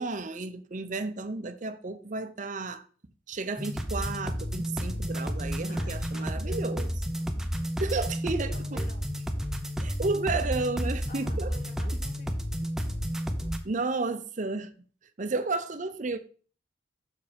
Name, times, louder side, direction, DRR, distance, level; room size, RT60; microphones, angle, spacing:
voice 1, 0.0-2.8 3.3-6.9 7.8-8.9 9.8-11.5 11.9-12.0 13.6-14.7 15.2-16.2, right 3 dB, 45° right, 0.7 m, -32 dB
sound 1, 3.6-13.6, equal, 5° right, 0.6 m, -31 dB
voice 2, 5.7-7.3 8.2-9.1 11.1-12.4, right 1 dB, 50° left, 1.6 m, -50 dB
6.3 x 4.8 x 5.1 m
head